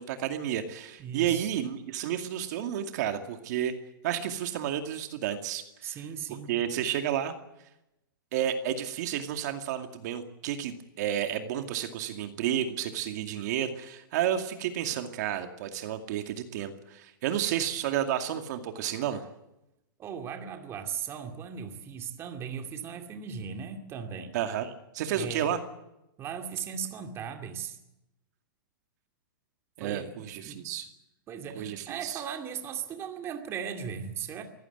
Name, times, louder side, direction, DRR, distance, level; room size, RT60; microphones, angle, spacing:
voice 1, 0.0-3.7 4.0-6.0 6.5-7.3 8.3-19.2 24.3-25.6 29.8-30.9 31.5-32.2, right 10 dB, 50° right, 6 dB, 2.4 m, -31 dB
voice 2, 1.0-1.5 5.8-6.6 20.0-24.4 25.1-25.5 26.2-27.8 29.8-30.7 31.3-34.4, right 7 dB, 20° right, 5 dB, 2.3 m, -37 dB
23.5 x 16.0 x 9.3 m, 0.88 s
hypercardioid pair, 155°, 12 cm